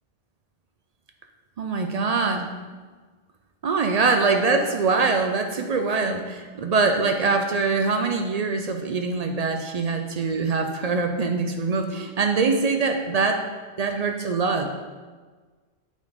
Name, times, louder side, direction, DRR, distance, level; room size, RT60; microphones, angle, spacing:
voice 1, 1.6-2.5 3.6-13.4 13.8-14.7, right 4 dB, 50° right, 5 dB, 0.5 m, -23 dB
8.2 x 4.0 x 3.5 m, 1.4 s
omnidirectional pair, 1.1 m